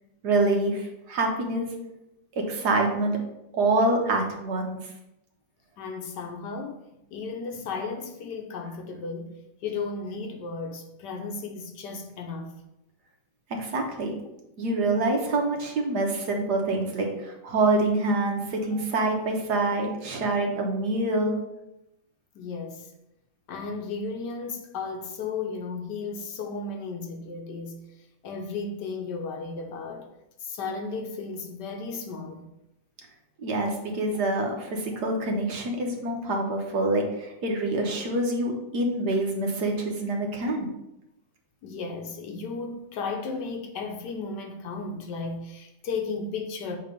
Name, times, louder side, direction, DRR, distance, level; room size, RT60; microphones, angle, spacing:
voice 1, 0.2-1.7 2.4-3.2 3.5-4.8 13.5-14.2 14.6-21.4 33.4-40.7, right 2 dB, 65° right, 1.5 m, -26 dB
voice 2, 5.8-12.5 18.7-18.8 22.3-22.9 23.5-27.8 28.2-30.1 30.4-32.5 41.6-46.8, left 4 dB, 70° left, 1.3 m, -34 dB
7.3 x 2.9 x 5.2 m
omnidirectional pair, 2.0 m